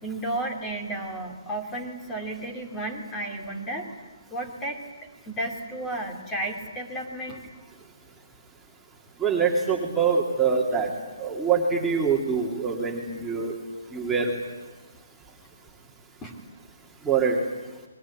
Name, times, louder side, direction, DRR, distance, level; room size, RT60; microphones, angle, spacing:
voice 1, 0.0-3.9 4.3-4.8 5.3-7.4 16.2-16.4, right 1 dB, 15° left, 3 dB, 2.8 m, -33 dB
voice 2, 9.2-10.9 11.2-13.5 13.9-14.3 17.0-17.4, right 5 dB, 5° right, -2 dB, 2.7 m, -24 dB
29.5 x 21.5 x 8.5 m, 1.3 s
hypercardioid pair, 160°, 0 cm